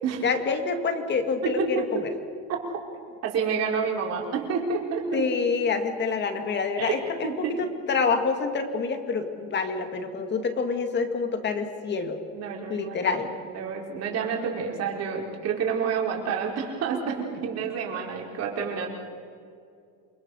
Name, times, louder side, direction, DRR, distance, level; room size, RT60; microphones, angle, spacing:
voice 1, 0.2-2.1 5.1-12.2 12.7-13.3, left 5 dB, 30° left, 7 dB, 2.3 m, -27 dB
voice 2, 1.4-2.0 2.5-2.6 3.2-5.3 6.8-7.6 12.3-13.1 13.4-18.9, right 6 dB, 40° right, 0 dB, 4.9 m, -29 dB
28.5 x 23.0 x 6.5 m, 2.4 s
cardioid pair, 150°, 37 cm